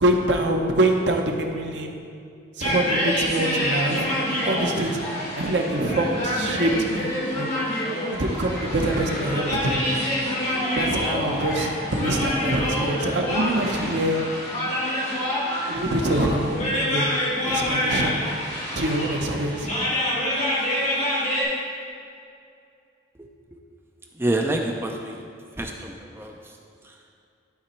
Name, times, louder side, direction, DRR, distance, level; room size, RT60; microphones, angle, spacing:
voice 1, 0.0-1.9 2.6-7.5 8.1-9.8 10.8-14.4 15.7-17.1 17.4-18.2 18.8-19.7, right 1 dB, 65° right, 3 dB, 0.8 m, -25 dB
sound 1, 2.6-21.4, left 1 dB, 40° left, 1.9 m, -27 dB
voice 2, 24.2-25.2 25.6-26.4, right 1 dB, 15° right, 2 dB, 0.4 m, -27 dB
12.0 x 4.2 x 4.3 m, 2.5 s
head